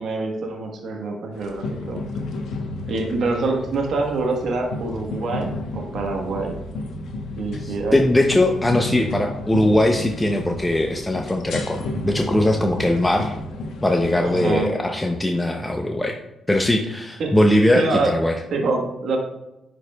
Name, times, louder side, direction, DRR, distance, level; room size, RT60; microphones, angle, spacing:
voice 1, 0.0-2.0 2.9-6.6 7.4-8.0 14.2-14.8 17.2-17.3 17.7-18.1 18.5-19.2, right 3 dB, 65° right, 1 dB, 1.1 m, -25 dB
sound 1, 1.3-14.6, left 2 dB, 75° left, 0.9 m, -32 dB
voice 2, 7.6-13.3 13.8-16.2 16.5-18.3, left 1 dB, 10° left, 3 dB, 0.6 m, -20 dB
10.5 x 4.8 x 2.2 m, 0.95 s
cardioid pair, 90°, 0 cm